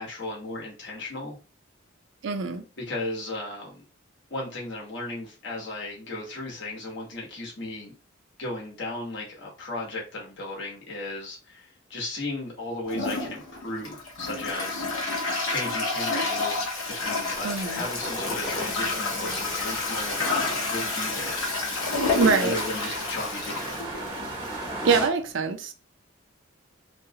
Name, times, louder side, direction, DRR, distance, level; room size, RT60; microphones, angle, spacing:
voice 1, 0.0-1.4 2.8-3.8 4.3-7.9 8.4-14.8 15.4-16.7 16.9-21.4 22.4-23.8, left 2 dB, 60° left, 0.9 m, -35 dB
voice 2, 2.2-2.6 17.4-17.8 22.2-22.5 24.8-25.7, right 5 dB, 65° right, 0.4 m, -24 dB
Toilet flush, 12.9-24.7, left 3 dB, 85° left, 0.8 m, -29 dB
sound 1, 16.5-20.3 20.7-20.8 21.0-21.5, equal, 10° left, 0.7 m, -40 dB
sound 2, 17.0-25.1, right 2 dB, 25° right, 0.6 m, -38 dB
2.5 x 2.0 x 2.7 m
head